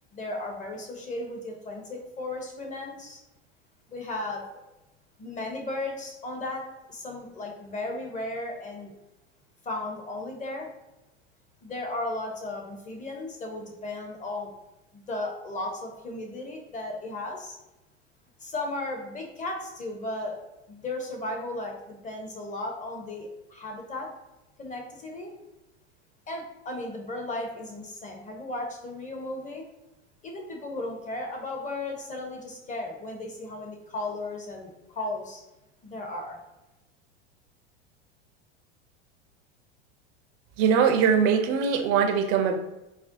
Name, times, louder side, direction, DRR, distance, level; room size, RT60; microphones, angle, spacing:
voice 1, 0.1-3.2 3.9-4.6 5.2-8.9 9.6-10.7 11.6-14.5 14.9-17.6 18.4-20.4 20.7-24.1 24.6-25.3 26.3-29.6 30.2-35.4 35.8-36.4, left 2 dB, 20° left, 1 dB, 0.8 m, -35 dB
voice 2, 40.6-42.6, right 6 dB, 45° right, 4 dB, 0.5 m, -22 dB
4.2 x 2.1 x 2.5 m, 0.96 s
hypercardioid pair, 95°, 34 cm